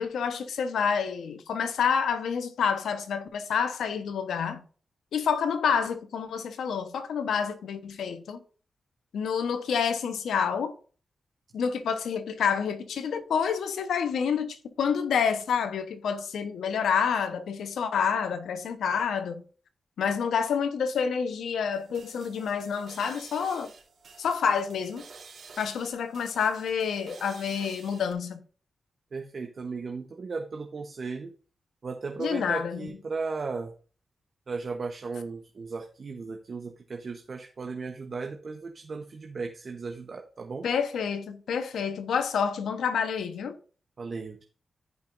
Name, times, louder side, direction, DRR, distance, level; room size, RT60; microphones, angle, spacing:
voice 1, 0.0-4.6 5.1-8.4 9.1-10.7 11.5-19.4 20.0-23.7 24.2-25.0 25.6-28.4 32.2-32.9 40.6-43.6, left 6 dB, 80° left, 1.0 m, -28 dB
sound 1, 21.7-28.1, right 4 dB, 75° right, 2.7 m, -50 dB
voice 2, 29.1-31.3 31.8-33.7 34.5-40.7 44.0-44.4, right 4 dB, 60° right, 1.1 m, -36 dB
14.5 x 5.5 x 2.6 m
supercardioid pair, 40°, 0 cm